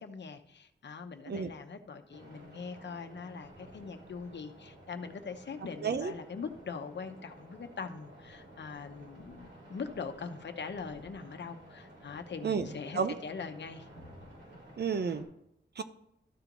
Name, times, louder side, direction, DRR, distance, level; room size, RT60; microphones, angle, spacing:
voice 1, 0.0-13.9, left 5 dB, 70° left, 7 dB, 0.9 m, -42 dB
sound 1, 2.1-15.2, right 1 dB, 75° right, 3.0 m, -53 dB
voice 2, 5.8-6.1 12.4-13.1 14.8-15.3 15.8-15.9, right 6 dB, 60° right, 10 dB, 0.8 m, -31 dB
13.5 x 4.6 x 3.9 m, 0.78 s
wide cardioid pair, 125°, 19 cm